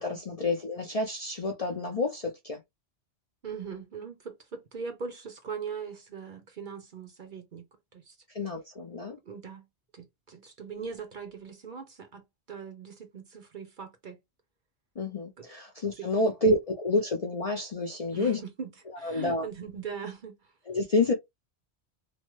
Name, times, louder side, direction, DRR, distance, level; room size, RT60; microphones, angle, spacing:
voice 1, 0.0-2.6 8.3-9.2 15.0-18.4 19.0-19.5 20.7-21.1, left 2 dB, 45° left, 0.5 m, -29 dB
voice 2, 3.4-7.7 7.9-8.2 9.2-9.6 9.9-12.2 12.5-14.2 15.4-15.5 16.0-16.1 18.1-18.7 19.0-20.4, right 6 dB, 50° right, 0.8 m, -40 dB
3.1 x 2.1 x 3.0 m
omnidirectional pair, 1.2 m